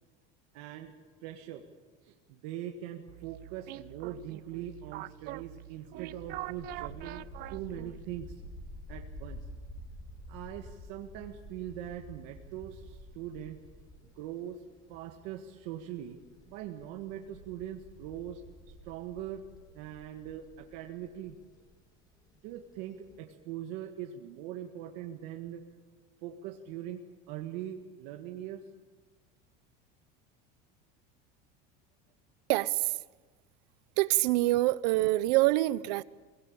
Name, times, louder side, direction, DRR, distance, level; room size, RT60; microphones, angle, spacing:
voice 1, 0.5-1.7 2.0-7.2 7.5-8.4 8.9-9.4 10.3-16.2 16.5-18.4 18.8-19.4 19.7-21.4 22.4-25.6 26.2-28.7, right 11 dB, 65° right, 1.8 m, -42 dB
sound 1, 3.1-8.2, right 17 dB, 50° right, 0.7 m, -44 dB
sound 2, 6.2-23.2, equal, 20° left, 3.2 m, -50 dB
voice 2, 32.5-33.0 34.0-36.0, right 18 dB, 85° right, 0.8 m, -25 dB
23.5 x 18.0 x 8.8 m
cardioid pair, 165°, 21 cm